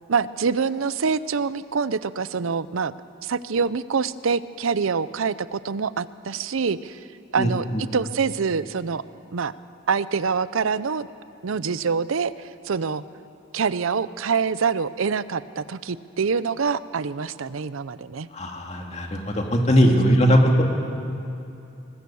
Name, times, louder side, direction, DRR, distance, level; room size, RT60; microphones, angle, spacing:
voice 1, 0.1-2.9 3.2-7.0 7.3-7.7 7.9-9.0 9.3-9.5 9.9-11.1 11.4-13.0 13.5-18.3 19.8-20.3, right 5 dB, 85° right, 16 dB, 0.6 m, -25 dB
voice 2, 7.4-7.8 18.3-20.6, equal, 35° left, 2 dB, 2.2 m, -20 dB
24.0 x 20.0 x 7.0 m, 2.7 s
head